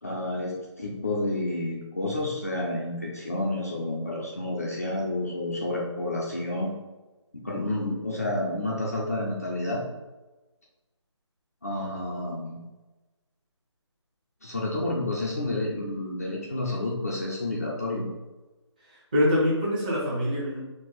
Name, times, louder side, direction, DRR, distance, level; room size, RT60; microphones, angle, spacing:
voice 1, 0.0-6.8 7.4-9.8 11.6-12.6 14.4-18.1, left 1 dB, 30° left, -4 dB, 0.6 m, -30 dB
voice 2, 18.8-20.6, left 1 dB, 15° right, -8 dB, 1.0 m, -25 dB
4.6 x 2.3 x 4.0 m, 1.1 s
figure-of-eight pair, 175°, 15 cm